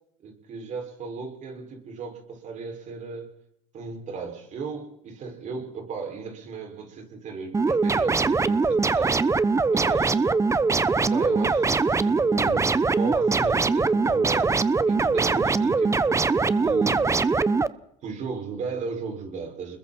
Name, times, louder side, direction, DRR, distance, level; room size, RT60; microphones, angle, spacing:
voice 1, 0.2-3.3 3.7-9.2 9.7-10.3 11.0-14.6 14.9-15.9 16.5-17.1 18.0-19.8, right 5 dB, 50° right, 3 dB, 6.2 m, -35 dB
sound 1, 7.5-17.7, right 4 dB, 20° right, 1.0 m, -22 dB
30.0 x 21.0 x 4.5 m, 0.75 s
supercardioid pair, 85°, 16 cm